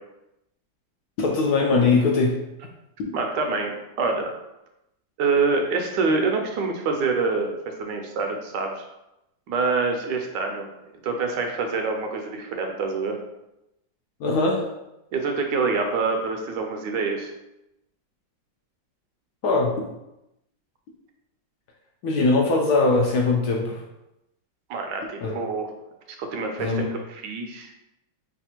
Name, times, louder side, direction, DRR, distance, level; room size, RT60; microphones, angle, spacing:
voice 1, 1.2-2.4 14.2-14.7 19.4-19.7 22.0-23.8 25.2-25.4 26.6-26.8, left 3 dB, 70° left, -1 dB, 1.0 m, -21 dB
voice 2, 3.1-4.3 5.2-7.5 7.8-8.8 9.5-10.7 11.0-13.2 15.1-17.3 24.7-25.7 26.2-26.8 27.1-27.7, right 4 dB, 75° right, 3 dB, 1.2 m, -26 dB
3.3 x 2.4 x 4.2 m, 0.89 s
omnidirectional pair, 2.0 m